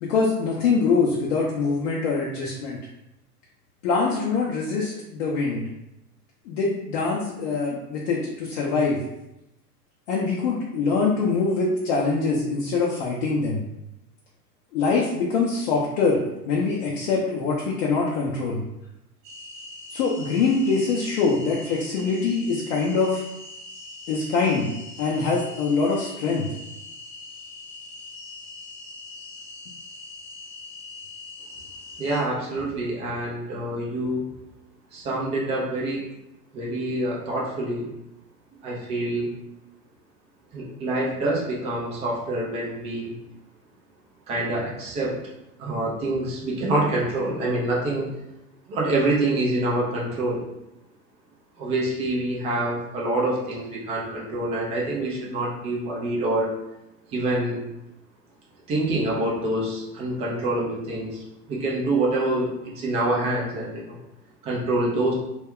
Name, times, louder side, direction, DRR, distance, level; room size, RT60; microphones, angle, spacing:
voice 1, 0.0-2.8 3.8-5.7 6.5-9.0 10.1-13.6 14.7-18.6 19.9-23.2 24.1-24.7 25.0-26.5, left 4 dB, 50° left, -3 dB, 0.6 m, -24 dB
sound 1, 19.2-32.2, left 2 dB, 35° right, 0.9 m, -42 dB
voice 2, 32.0-34.3 34.9-36.0 36.5-37.9 38.6-39.3 40.5-43.1 44.3-45.2 45.6-48.1 48.7-50.4 51.6-56.5 57.1-57.6 58.7-64.0 64.4-65.1, right 1 dB, 15° right, -3 dB, 0.3 m, -26 dB
2.3 x 2.1 x 3.5 m, 0.89 s
figure-of-eight pair, 85°, 47 cm